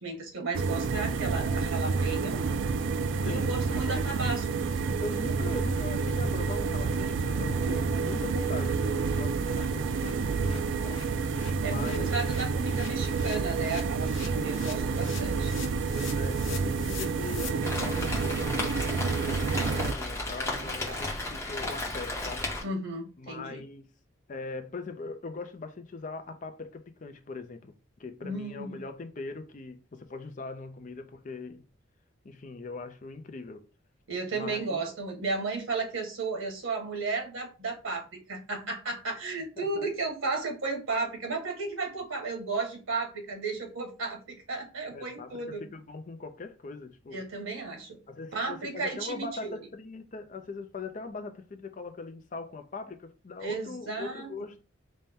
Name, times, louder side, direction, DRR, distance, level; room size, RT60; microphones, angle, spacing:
voice 1, 0.0-2.4 3.2-4.6 7.7-8.1 11.6-15.5 20.4-21.0 22.6-23.6 28.2-28.8 34.1-45.6 47.1-48.0 48.3-49.6 53.4-54.3, right 3 dB, 90° right, 1.3 m, -34 dB
sound 1, 0.5-19.9, right 4 dB, 65° right, 0.3 m, -29 dB
voice 2, 3.2-4.3 5.0-11.0 11.6-12.1 14.0-14.5 15.9-22.5 23.2-23.9 24.3-27.7 28.0-31.6 32.2-33.7 34.3-34.8 39.6-39.8 44.9-47.2 48.1-54.6, left 3 dB, 40° left, 0.4 m, -41 dB
sound 2, 4.5-4.6 4.9-5.0 5.4-5.5 5.8-6.0 6.3-6.4 6.7-6.9 7.2-7.3 7.6-17.5, left 6 dB, 70° left, 0.8 m, -46 dB
Rain, 17.6-22.6, left 2 dB, 15° left, 0.8 m, -34 dB
4.1 x 2.1 x 3.5 m
head